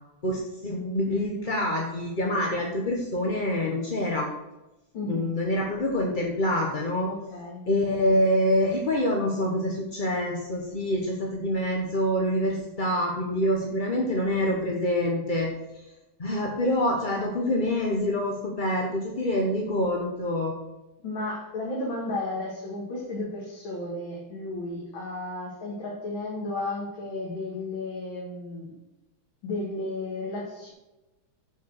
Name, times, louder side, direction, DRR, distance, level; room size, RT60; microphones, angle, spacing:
voice 1, 0.2-4.3 5.0-7.1 7.7-15.8 16.2-20.5, left 1 dB, 30° left, 0 dB, 0.9 m, -26 dB
voice 2, 4.9-5.3 7.1-7.6 21.0-28.7 29.4-30.7, left 2 dB, 65° left, -4 dB, 2.9 m, -33 dB
10.0 x 5.7 x 6.4 m, 0.98 s
omnidirectional pair, 2.4 m